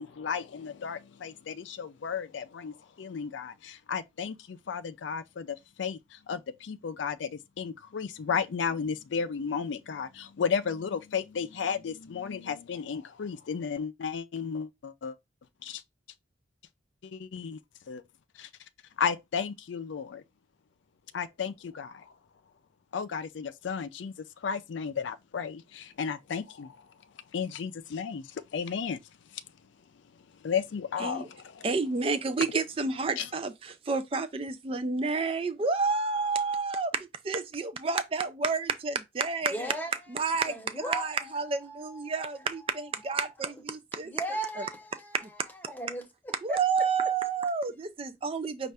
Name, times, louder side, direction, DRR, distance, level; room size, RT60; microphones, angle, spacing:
voice 1, 0.0-15.2 15.6-15.8 17.0-17.6 17.9-18.0 18.4-18.5 19.0-20.2 21.1-22.1 22.9-26.9 27.3-29.0 29.3-29.4 30.4-31.7 33.2-33.3, left 6 dB, 75° left, 0.4 m, -34 dB
voice 2, 31.6-39.7 40.1-44.1 44.6-44.7 45.1-45.3 46.4-48.7, right 4 dB, 30° right, 0.4 m, -30 dB
voice 3, 39.5-39.9 40.5-41.1 41.5-42.4 44.0-45.1 45.7-46.6, right 1 dB, 10° left, 0.7 m, -37 dB
5.4 x 2.4 x 3.3 m
head